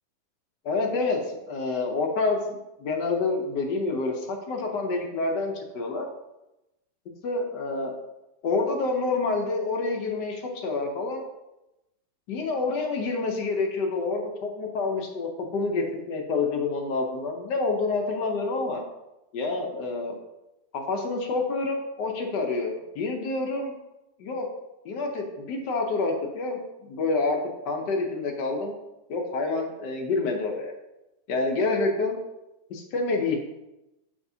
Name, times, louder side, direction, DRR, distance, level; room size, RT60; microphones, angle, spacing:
voice 1, 0.6-2.4 2.8-6.1 7.2-7.9 8.4-11.2 12.3-18.8 19.3-20.1 20.7-23.7 24.2-24.5 24.8-27.4 27.7-28.7 29.1-30.7 31.3-32.2 32.7-33.4, left 3 dB, 85° left, 2 dB, 1.5 m, -28 dB
6.1 x 5.7 x 2.7 m, 0.96 s
omnidirectional pair, 1.8 m